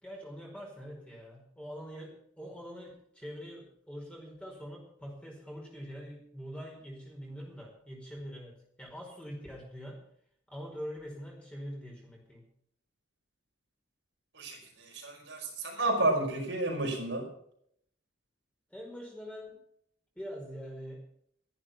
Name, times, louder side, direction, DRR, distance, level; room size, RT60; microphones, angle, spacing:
voice 1, 0.0-10.0 10.5-12.4 18.7-19.6 20.1-21.0, equal, 5° left, -1 dB, 4.8 m, -44 dB
voice 2, 14.3-17.2, right 2 dB, 65° right, 0 dB, 5.3 m, -31 dB
14.0 x 11.0 x 5.9 m, 0.68 s
head